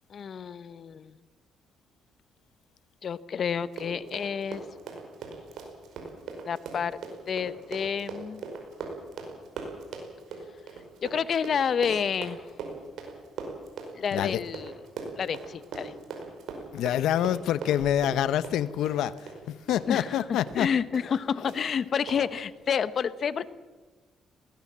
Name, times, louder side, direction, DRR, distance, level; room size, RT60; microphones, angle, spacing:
voice 1, 0.1-1.1 3.0-4.6 6.4-7.0 7.3-8.4 11.0-12.4 13.9-14.7 15.2-15.9 19.9-20.2 20.6-23.5, left 7 dB, 55° left, 16 dB, 0.9 m, -29 dB
Run, 3.6-20.2 20.5-20.6 20.9-21.2 21.5-21.6 22.1-22.2, right 5 dB, 80° right, 5.2 m, -39 dB
voice 2, 16.7-19.2 19.5-20.7, left 11 dB, 85° left, 16 dB, 0.9 m, -26 dB
20.5 x 18.5 x 7.5 m, 1.3 s
cardioid pair, 90°, 0 cm